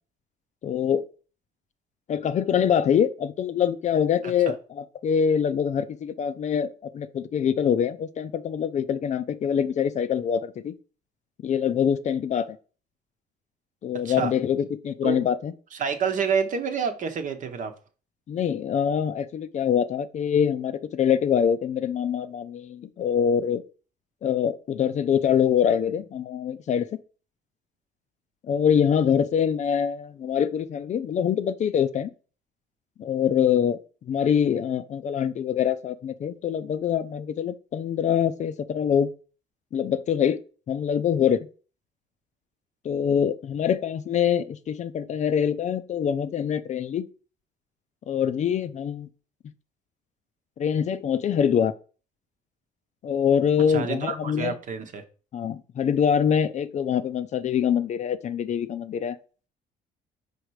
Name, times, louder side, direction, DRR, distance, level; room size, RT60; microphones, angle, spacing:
voice 1, 0.6-1.1 2.1-6.7 6.9-10.7 11.4-12.6 13.8-15.5 18.3-23.6 24.2-26.9 28.5-32.1 33.0-33.8 34.0-39.1 39.7-40.4 40.7-41.5 42.8-47.1 48.1-49.1 50.6-51.7 53.0-54.5 55.3-59.2, left 8 dB, 45° left, 0.5 m, -24 dB
voice 2, 15.8-17.7 53.7-55.0, right 6 dB, 50° right, 1.0 m, -28 dB
5.1 x 4.2 x 4.7 m
cardioid pair, 110°, 17 cm